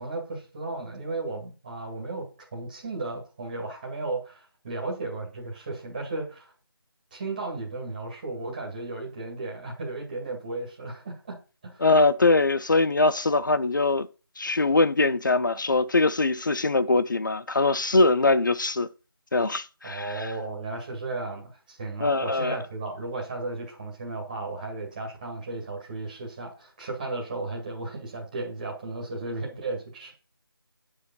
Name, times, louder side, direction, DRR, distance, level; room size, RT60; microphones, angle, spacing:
voice 1, 0.0-6.5 7.1-11.8 19.8-30.1, right 3 dB, 20° right, 2.0 m, -35 dB
voice 2, 11.8-14.1 14.4-18.9 19.3-20.3 22.0-22.6, left 3 dB, 55° left, 0.6 m, -22 dB
9.4 x 5.0 x 5.5 m
figure-of-eight pair, 170°, 13 cm